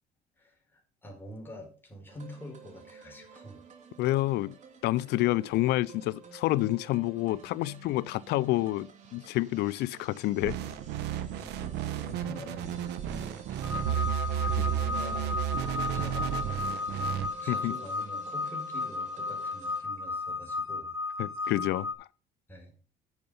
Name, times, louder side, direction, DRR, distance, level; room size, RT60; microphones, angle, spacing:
voice 1, 0.4-3.6 11.0-14.3 14.6-15.4 15.9-16.3 17.4-20.9 22.5-22.8, equal, 10° left, 4.7 m, -47 dB
sound 1, 2.1-19.8, right 6 dB, 45° right, 3.0 m, -53 dB
voice 2, 4.0-4.5 4.8-10.6 14.5-14.7 17.5-17.7 21.2-21.9, left 17 dB, 80° left, 0.4 m, -28 dB
sound 2, 10.4-17.3, right 9 dB, 80° right, 1.1 m, -32 dB
sound 3, 13.6-21.9, left 3 dB, 15° right, 3.2 m, -34 dB
10.5 x 6.9 x 5.5 m
cardioid pair, 110°, 17 cm